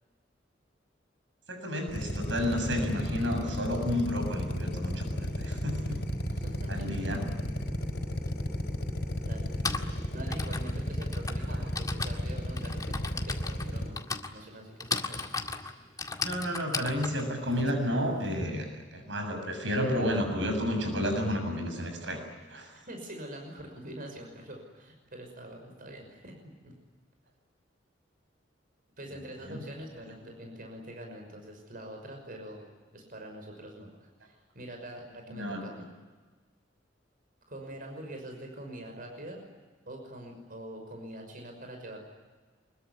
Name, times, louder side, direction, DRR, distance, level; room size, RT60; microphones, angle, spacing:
voice 1, 1.5-6.0 6.7-7.3 11.5-11.6 16.2-22.2 22.5-22.7 29.5-29.6 35.3-35.6, equal, 90° right, 5 dB, 7.2 m, -31 dB
Drill, 1.9-13.9, equal, 65° left, 4.7 m, -33 dB
voice 2, 6.3-6.9 9.2-9.5 10.1-15.2 22.9-26.4 26.6-26.7 29.0-32.6 32.9-35.9 37.5-39.4 39.9-42.1, right 1 dB, 50° right, 3 dB, 5.9 m, -44 dB
Typing, 8.3-8.4 9.3-18.5, left 4 dB, 20° left, 2.0 m, -36 dB
25.0 x 22.0 x 9.7 m, 1.4 s
head